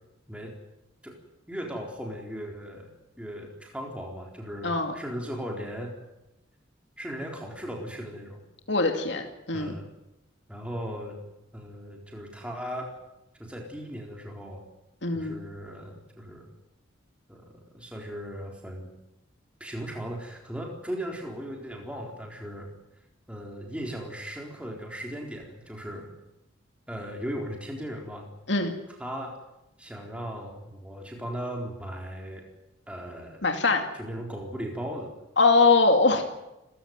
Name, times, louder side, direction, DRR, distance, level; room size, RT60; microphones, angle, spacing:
voice 1, 1.5-2.9 3.2-5.9 7.0-8.4 9.5-9.8 10.5-11.2 11.5-12.9 13.4-14.6 15.1-16.5 17.3-18.9 19.6-22.7 23.3-26.1 26.9-28.3 29.0-29.4 29.8-32.5 32.9-33.4 34.0-35.1, equal, 5° right, 0 dB, 4.0 m, -37 dB
voice 2, 4.6-4.9 8.7-9.7 15.0-15.4 28.5-28.7 33.4-33.8 35.4-36.2, left 3 dB, 60° left, 4 dB, 2.5 m, -22 dB
29.5 x 15.5 x 9.4 m, 0.94 s
head